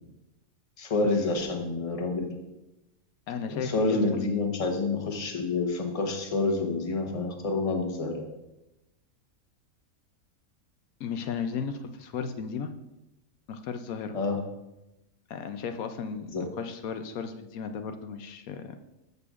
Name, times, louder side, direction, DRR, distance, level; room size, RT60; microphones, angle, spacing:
voice 1, 0.8-2.3 3.5-8.3 14.1-14.4 16.3-16.5, left 3 dB, 25° left, 2 dB, 1.0 m, -28 dB
voice 2, 3.3-4.4 11.0-12.7 13.5-14.2 15.3-18.8, left 6 dB, 80° left, 7 dB, 1.1 m, -35 dB
13.5 x 6.6 x 2.5 m, 0.93 s
omnidirectional pair, 1.5 m